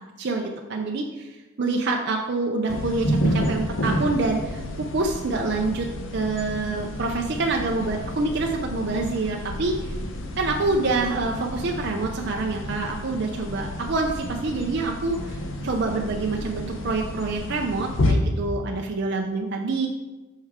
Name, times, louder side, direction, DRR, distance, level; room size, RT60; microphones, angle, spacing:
voice 1, 0.2-5.9 6.1-9.9 10.4-19.9, right 3 dB, 50° right, 1 dB, 0.5 m, -26 dB
sound 1, 2.7-18.1, left 1 dB, 60° left, 0.8 m, -30 dB
8.0 x 5.5 x 3.6 m, 1.2 s
head